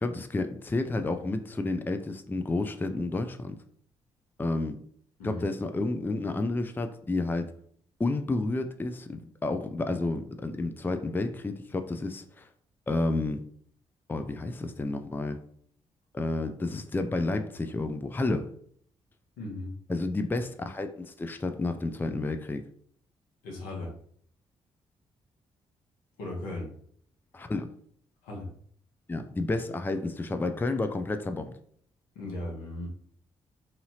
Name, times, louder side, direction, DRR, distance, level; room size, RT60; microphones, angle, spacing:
voice 1, 0.0-3.6 4.4-4.8 5.2-7.5 8.0-12.5 12.9-13.4 14.1-15.4 16.1-18.5 19.9-22.6 27.3-27.7 29.1-31.5, left 2 dB, 15° left, 8 dB, 0.4 m, -30 dB
voice 2, 19.4-19.7 23.4-23.9 26.2-26.7 28.2-28.5 32.1-32.9, left 2 dB, 85° left, -2 dB, 0.9 m, -37 dB
2.8 x 2.7 x 2.7 m, 0.62 s
hypercardioid pair, 45°, 14 cm